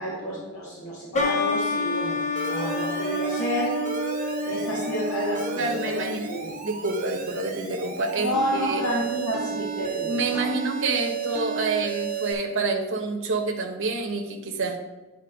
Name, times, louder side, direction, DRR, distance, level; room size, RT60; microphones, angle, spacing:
voice 1, 0.0-3.8 4.4-6.5 8.2-10.5, equal, 80° left, -9 dB, 2.6 m, -30 dB
sound 1, 1.1-6.6, left 2 dB, 35° left, 0.9 m, -28 dB
Alarm, 2.4-12.3, right 6 dB, 40° right, 0.9 m, -33 dB
voice 2, 5.6-6.3 6.6-8.8 10.0-14.8, right 3 dB, 65° right, 2 dB, 0.9 m, -28 dB
9.4 x 4.2 x 3.9 m, 1.1 s
head